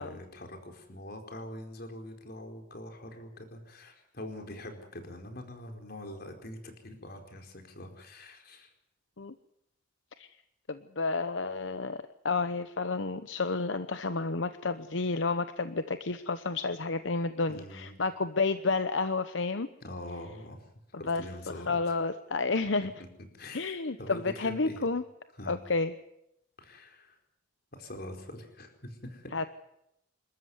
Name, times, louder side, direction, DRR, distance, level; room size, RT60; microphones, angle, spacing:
voice 1, 0.0-8.7 17.5-17.9 19.8-20.6 21.0-21.9 23.0-23.1 23.3-24.9 25.3-25.5 26.6-27.2 27.7-29.3, left 1 dB, 55° left, 5 dB, 4.5 m, -44 dB
voice 2, 10.7-19.7 21.1-21.2 21.7-22.9 23.5-25.0 25.5-25.9 29.3-29.4, left 3 dB, 80° left, 11 dB, 0.9 m, -30 dB
27.0 x 14.0 x 9.6 m, 0.80 s
head